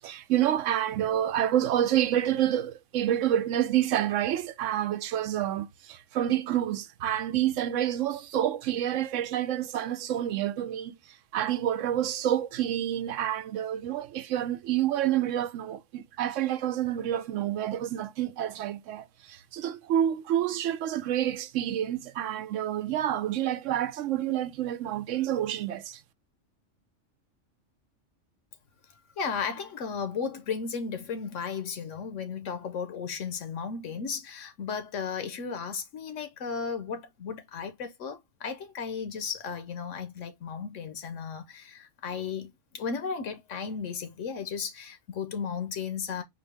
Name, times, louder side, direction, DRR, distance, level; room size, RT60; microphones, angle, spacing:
voice 1, 0.0-10.9 11.3-26.0, right 11 dB, 80° right, 0.9 m, -28 dB
voice 2, 29.2-46.2, left 6 dB, 80° left, 1.1 m, -35 dB
4.5 x 2.7 x 3.3 m
omnidirectional pair, 1.3 m